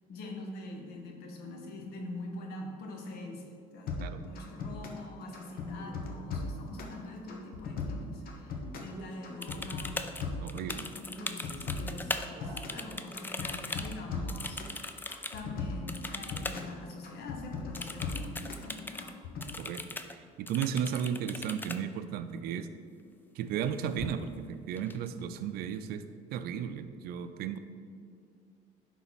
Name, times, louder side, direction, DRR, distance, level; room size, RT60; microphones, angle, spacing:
voice 1, 0.1-10.1 11.0-15.0 15.3-19.1, left 2 dB, 80° left, 2 dB, 1.3 m, -44 dB
sound 1, 3.9-5.0 5.3-7.0 7.3-8.9 9.2-10.9 11.2-12.8 13.1-14.8 15.1-16.7 17.0-18.7 19.0-19.5, left 5 dB, 65° left, 1.2 m, -38 dB
Male speech man speaking, 5.2-13.8, equal, 30° right, 1.5 m, -53 dB
sound 2, 9.4-12.3 12.6-15.4 15.9-16.6 16.9-17.0 17.7-19.1 19.4-20.1 20.5-21.8 23.5-23.7 24.0-24.4 24.8-25.4, left 2 dB, 10° left, 0.4 m, -39 dB
voice 2, 10.4-10.9 19.6-22.7 23.4-26.0 26.3-27.6, right 8 dB, 70° right, 10 dB, 0.5 m, -35 dB
10.5 x 4.0 x 4.1 m, 2.3 s
cardioid pair, 110°, 16 cm